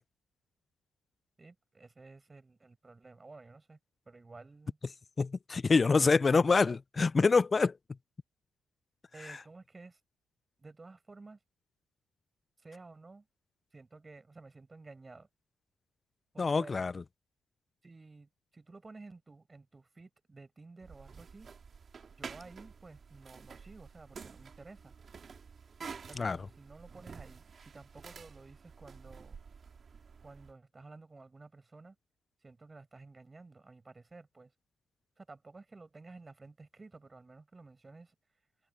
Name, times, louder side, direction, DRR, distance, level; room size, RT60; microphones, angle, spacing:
voice 1, 1.4-3.8 4.1-4.8 6.0-6.6 9.1-10.0 10.6-11.4 12.6-13.3 13.7-15.3 16.3-16.7 17.8-21.5 22.2-24.9 26.1-29.4 30.2-32.0 32.4-34.5 35.2-38.1, right 3 dB, 25° right, 5.7 m, -53 dB
voice 2, 5.2-7.8 9.3-9.4 16.4-17.0 26.2-26.4, left 4 dB, 30° left, 0.4 m, -26 dB
sound 1, 20.8-30.5, right 5 dB, 45° right, 2.8 m, -50 dB
cardioid pair, 90°, 0 cm